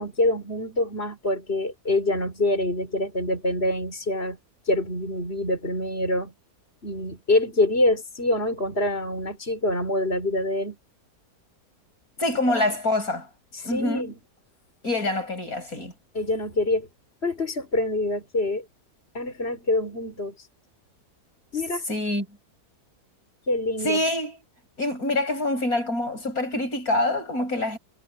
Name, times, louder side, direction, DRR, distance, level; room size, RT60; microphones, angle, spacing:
voice 1, 0.0-4.4 4.6-6.3 6.8-10.8 13.5-14.1 16.1-16.9 17.2-18.6 19.1-20.5 21.5-21.8 23.5-24.0, left 2 dB, 35° left, 5.0 m, -25 dB
voice 2, 12.2-13.3 13.6-14.1 14.8-15.9 21.9-22.3 23.8-24.4 24.8-27.8, left 1 dB, 60° left, 8.4 m, -25 dB
omnidirectional pair, 1.7 m